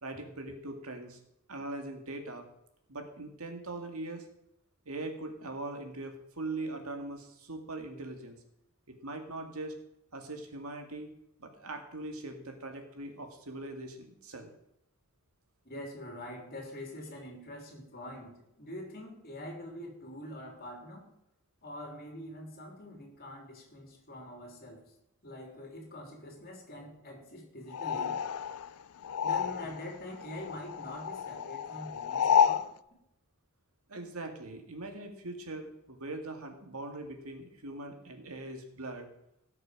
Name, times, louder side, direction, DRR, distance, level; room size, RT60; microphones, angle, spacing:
voice 1, 0.0-1.2 1.5-2.4 2.9-4.2 4.9-8.4 8.9-9.8 10.1-11.1 11.4-14.5 33.9-39.1, right 2 dB, 80° right, 4 dB, 2.2 m, -41 dB
voice 2, 15.7-21.1 21.6-24.8 25.2-28.8 29.2-32.7, left 1 dB, 45° left, 1 dB, 3.6 m, -44 dB
sound 1, 27.7-30.0 30.2-32.7, left 8 dB, 80° left, 0.5 m, -30 dB
18.0 x 6.6 x 5.1 m, 0.80 s
head